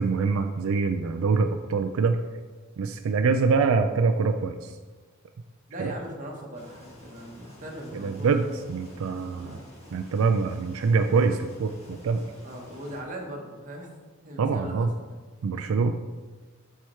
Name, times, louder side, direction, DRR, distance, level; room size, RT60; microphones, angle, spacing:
voice 1, 0.0-2.2 2.8-4.8 5.8-5.9 7.9-9.6 9.9-12.2 14.4-14.9 15.4-16.0, right 4 dB, 85° right, 7 dB, 0.4 m, -24 dB
voice 2, 5.7-8.4 9.4-9.6 12.4-13.9 14.2-15.2, right 1 dB, 40° right, 0 dB, 1.2 m, -39 dB
sound 1, 6.5-13.0, equal, 30° left, 1.5 m, -50 dB
5.6 x 4.8 x 4.4 m, 1.4 s
head